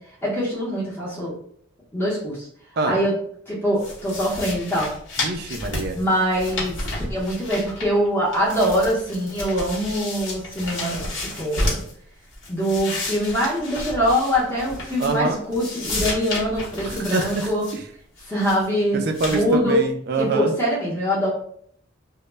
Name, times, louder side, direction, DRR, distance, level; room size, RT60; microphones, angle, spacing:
voice 1, 0.2-1.4 1.9-2.5 2.8-3.1 3.5-4.9 5.9-11.8 12.5-17.6 18.3-19.0 19.3-19.8 20.2-21.3, equal, 10° left, -7 dB, 0.6 m, -23 dB
sound 1, 3.8-8.1 8.3-11.9 12.3-15.3 15.5-17.8 18.2-18.7 19.1-19.4, left 2 dB, 70° left, 0.8 m, -31 dB
voice 2, 5.2-6.0 15.0-15.4 16.8-17.3 18.9-20.5, right 3 dB, 50° right, 6 dB, 0.3 m, -25 dB
2.0 x 2.0 x 3.2 m, 0.63 s
head